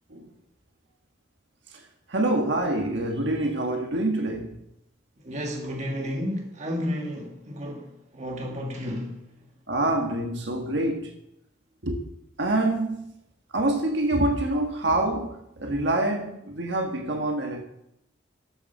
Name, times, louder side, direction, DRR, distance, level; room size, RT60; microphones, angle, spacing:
voice 1, 2.1-4.6 9.7-11.1 11.8-12.0 12.4-13.1 13.5-17.6, right 1 dB, 65° right, 1.6 m, -26 dB
voice 2, 5.2-9.2, equal, 35° right, 1.7 m, -32 dB
12.5 x 7.3 x 5.6 m
head